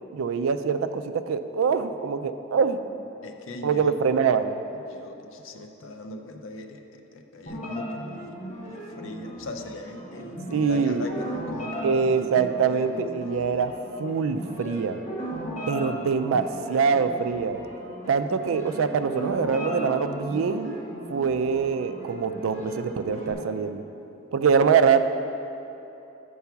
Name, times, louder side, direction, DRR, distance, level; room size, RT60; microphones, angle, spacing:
voice 1, 0.1-2.8 3.6-4.6 10.5-11.0 11.8-13.7 14.0-15.0 15.7-17.6 18.1-20.8 21.1-23.8 24.3-25.0, right 6 dB, 85° right, 10 dB, 0.4 m, -24 dB
voice 2, 2.8-4.0 4.7-13.0, left 2 dB, 80° left, 5 dB, 0.5 m, -40 dB
sound 1, 7.5-23.3, right 1 dB, 35° left, 1.2 m, -37 dB
6.8 x 4.7 x 5.8 m, 2.9 s
head